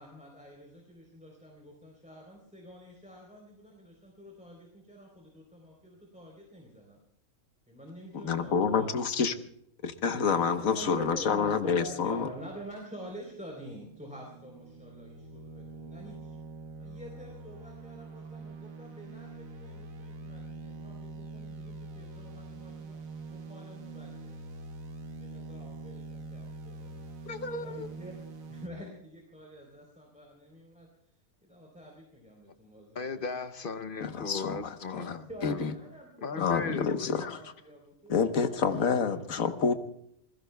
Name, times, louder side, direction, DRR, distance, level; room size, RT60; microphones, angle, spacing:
voice 1, 0.0-7.0 7.7-8.9 10.4-16.4 16.8-23.0 23.3-24.4 25.2-27.0 27.6-28.2 28.5-30.9 31.4-33.2 34.9-39.7, equal, 5° right, -1 dB, 3.7 m, -48 dB
voice 2, 8.1-9.3 9.8-12.3 34.0-35.0 35.4-35.7 36.4-37.4 38.1-39.7, left 6 dB, 65° left, 8 dB, 1.5 m, -28 dB
sound 1, 13.5-28.7, right 3 dB, 70° right, 1.5 m, -44 dB
voice 3, 27.3-27.9 32.9-35.6 36.2-37.3, left 4 dB, 50° left, 10 dB, 0.7 m, -37 dB
28.0 x 21.0 x 2.3 m, 0.69 s
omnidirectional pair, 1.5 m